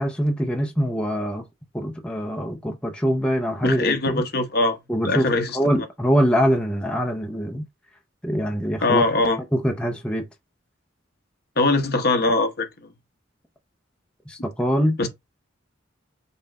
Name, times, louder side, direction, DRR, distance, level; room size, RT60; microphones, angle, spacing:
voice 1, 0.0-1.4 1.7-4.2 4.9-5.3 5.5-7.6 8.2-9.0 9.5-10.2 14.3-15.0, equal, 5° left, 0.6 m, -23 dB
voice 2, 3.6-4.8 5.0-5.6 8.8-9.4 11.6-12.7 15.0-15.1, left 2 dB, 50° left, 0.9 m, -21 dB
5.5 x 2.4 x 4.1 m
head